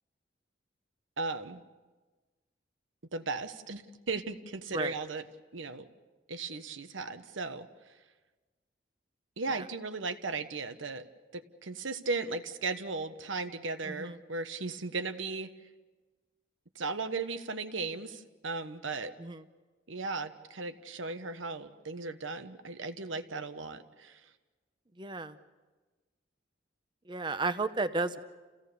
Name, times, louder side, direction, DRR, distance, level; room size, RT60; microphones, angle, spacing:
voice 1, 1.2-1.6 3.1-5.2 5.5-5.9 6.3-7.7 9.4-11.0 11.3-15.5 16.7-19.1 19.9-24.2, right 3 dB, 90° right, 9 dB, 1.2 m, -36 dB
voice 2, 13.8-14.2 19.2-19.4 25.0-25.4 27.1-28.2, right 3 dB, 25° right, 11 dB, 0.8 m, -33 dB
29.0 x 16.5 x 6.9 m, 1.3 s
head